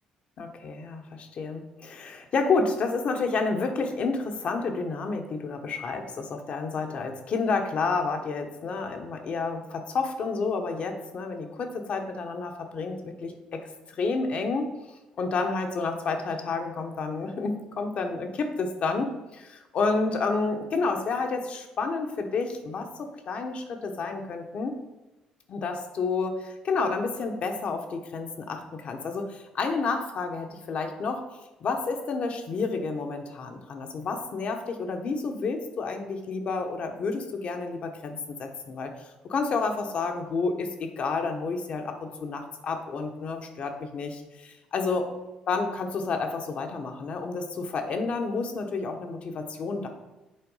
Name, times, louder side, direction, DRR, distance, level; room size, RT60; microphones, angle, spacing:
voice 1, 0.4-24.7 25.5-26.4 26.6-45.1 45.5-49.9, left 4 dB, 55° left, 5 dB, 1.1 m, -30 dB
7.7 x 4.4 x 5.6 m, 1.1 s
cardioid pair, 90°, 2 cm